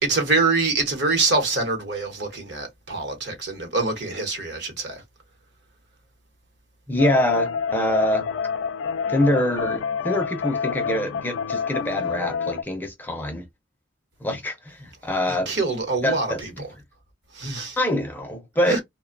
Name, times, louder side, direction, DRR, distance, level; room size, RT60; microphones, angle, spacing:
voice 1, 0.0-5.0 15.3-16.5 17.3-17.8 18.7-18.8, right 3 dB, 65° right, 1.0 m, -25 dB
voice 2, 6.9-8.3 9.1-13.5 14.2-15.5 16.0-16.4 17.8-18.8, left 1 dB, 10° left, 0.5 m, -24 dB
sound 1, 7.0-12.6, left 6 dB, 75° left, 0.3 m, -28 dB
2.5 x 2.1 x 2.5 m
head